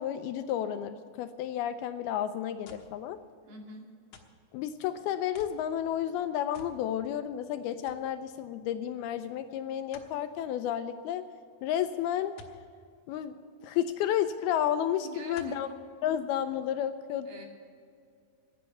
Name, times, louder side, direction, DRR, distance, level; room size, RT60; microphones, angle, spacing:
voice 1, 0.0-3.2 4.5-11.2 11.6-12.3 13.1-15.7 16.0-17.3, left 10 dB, 80° left, 9 dB, 2.3 m, -31 dB
sound 1, 2.7-3.0 4.1-4.5 5.3-5.6 6.5-6.8 7.2-7.3 7.9-8.1 9.9-10.2 12.4-12.6 14.1-14.2 15.3-15.7 16.4-16.5, left 5 dB, 60° left, 2.1 m, -51 dB
voice 2, 3.5-3.9 15.0-15.8 17.3-17.5, right 2 dB, 65° right, 1 dB, 3.9 m, -45 dB
16.0 x 10.5 x 6.9 m, 2.2 s
omnidirectional pair, 4.8 m